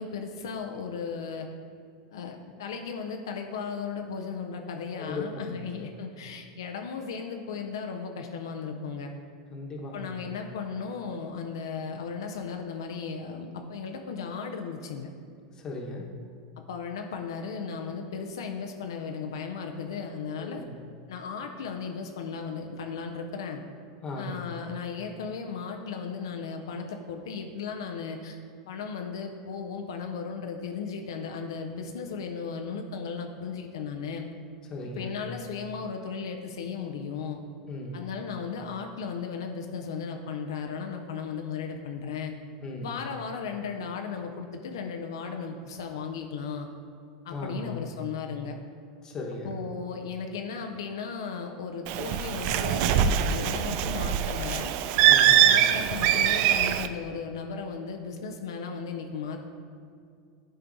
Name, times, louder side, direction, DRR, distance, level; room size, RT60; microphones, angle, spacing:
voice 1, 0.0-1.5 2.1-9.1 9.9-15.1 16.7-20.6 21.1-23.6 24.2-28.4 28.7-34.3 35.0-37.4 37.9-42.3 42.8-46.7 47.2-48.6 49.4-54.7 55.4-59.4, left 5 dB, 85° left, 4 dB, 0.5 m, -36 dB
voice 2, 5.0-5.6 9.5-10.1 15.6-16.1 20.4-20.7 24.0-24.4 34.7-35.2 37.7-38.1 42.6-42.9 47.3-47.8 49.0-49.6 55.1-55.4, left 2 dB, 30° left, 0 dB, 1.1 m, -37 dB
Bird, 51.9-56.9, right 10 dB, 55° right, 0.3 m, -23 dB
10.0 x 4.4 x 2.6 m, 2.4 s
supercardioid pair, 115°, 2 cm